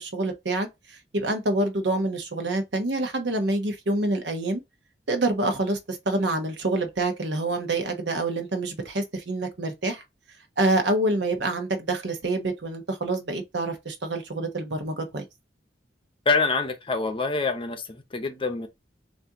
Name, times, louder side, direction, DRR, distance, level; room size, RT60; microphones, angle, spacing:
voice 1, 0.0-4.6 5.1-10.0 10.6-15.2, right 2 dB, 70° right, 1.0 m, -27 dB
voice 2, 16.3-18.7, left 4 dB, 30° left, 0.7 m, -26 dB
4.2 x 2.6 x 3.6 m
head